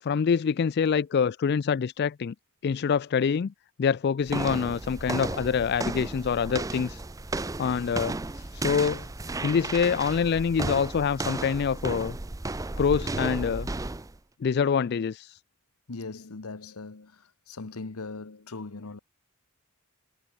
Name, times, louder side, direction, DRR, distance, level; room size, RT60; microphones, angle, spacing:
voice 1, 0.0-2.3 2.6-3.5 3.8-7.0 7.6-9.1 9.4-12.2 12.8-13.7 14.4-15.4, left 6 dB, 45° left, 0.3 m, -26 dB
sound 1, 4.3-14.2, right 2 dB, 15° right, 0.5 m, -34 dB
voice 2, 15.9-19.0, left 3 dB, 80° left, 1.1 m, -40 dB
head